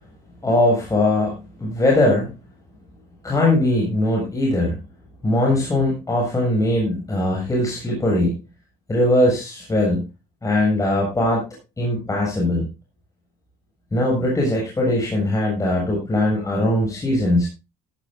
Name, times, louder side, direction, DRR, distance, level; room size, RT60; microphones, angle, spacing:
voice 1, 0.4-2.3 3.2-4.8 5.2-8.3 8.9-10.0 10.4-11.5 11.8-12.7 13.9-17.5, left 1 dB, 20° left, -2 dB, 7.4 m, -20 dB
15.5 x 14.5 x 2.6 m, 0.27 s
cardioid pair, 110°, 17 cm